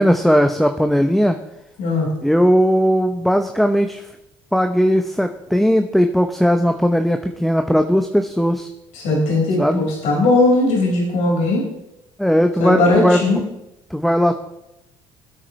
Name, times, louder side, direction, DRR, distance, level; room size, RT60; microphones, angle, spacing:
voice 1, 0.0-1.4 2.2-4.0 4.5-8.7 9.6-9.9 12.2-13.4 13.9-14.3, equal, ahead, 7 dB, 0.9 m, -17 dB
voice 2, 8.9-11.6 12.6-13.4, left 2 dB, 65° left, -2 dB, 5.3 m, -18 dB
20.0 x 8.8 x 3.3 m, 0.88 s
hypercardioid pair, 55°, 13 cm